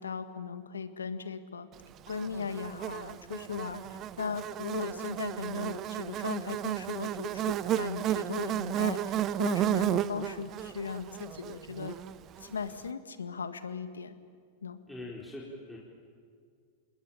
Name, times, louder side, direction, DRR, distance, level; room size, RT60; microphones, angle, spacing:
voice 1, 0.0-1.7 2.1-11.9 12.4-14.1 14.6-14.8, left 5 dB, 85° left, 10 dB, 1.7 m, -37 dB
Buzz, 2.1-12.5, right 12 dB, 35° right, 0.8 m, -33 dB
voice 2, 14.9-15.8, left 1 dB, 5° left, -4 dB, 4.7 m, -42 dB
27.5 x 20.5 x 9.1 m, 2.1 s
hypercardioid pair, 100°, 0 cm